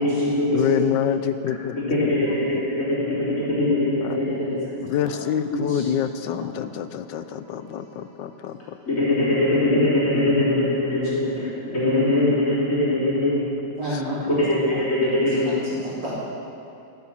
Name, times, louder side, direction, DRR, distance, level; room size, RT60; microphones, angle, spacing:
voice 1, 0.0-0.8 1.9-4.6 5.5-5.6 8.9-13.4 14.2-15.5, left 1 dB, 45° left, -8 dB, 4.3 m, -22 dB
voice 2, 0.5-2.2 4.0-4.2 4.8-8.8, left 10 dB, 85° left, 11 dB, 1.4 m, -26 dB
voice 3, 6.9-8.7 13.7-14.6 15.4-16.2, equal, 90° right, -11 dB, 4.0 m, -34 dB
14.5 x 12.5 x 5.8 m, 2.8 s
omnidirectional pair, 1.9 m